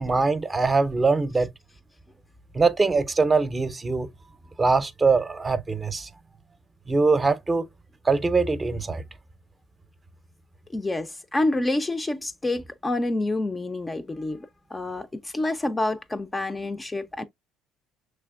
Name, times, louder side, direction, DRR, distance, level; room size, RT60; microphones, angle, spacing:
voice 1, 0.0-1.5 2.5-4.1 4.6-6.1 6.9-7.6 8.0-9.0, right 4 dB, 25° right, 0.6 m, -22 dB
voice 2, 10.7-17.2, left 2 dB, 20° left, 0.4 m, -28 dB
6.1 x 3.3 x 2.3 m
supercardioid pair, 70°, 0 cm